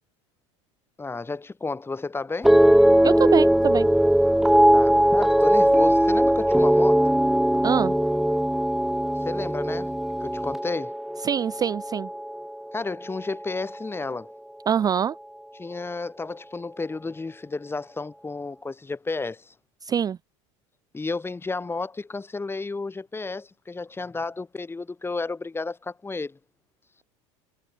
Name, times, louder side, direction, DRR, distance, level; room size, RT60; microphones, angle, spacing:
voice 1, 1.0-2.6 4.7-7.0 9.2-9.9 10.2-10.9 12.7-14.3 15.5-19.5 20.9-26.4, left 3 dB, 15° left, 1.5 m, -32 dB
sound 1, 2.4-12.8 13.1-13.7, right 1 dB, ahead, 0.9 m, -20 dB
voice 2, 3.0-3.9 7.6-7.9 11.2-12.1 14.7-15.2 19.8-20.2, right 8 dB, 25° right, 0.4 m, -24 dB
hypercardioid pair, 90°, 16 cm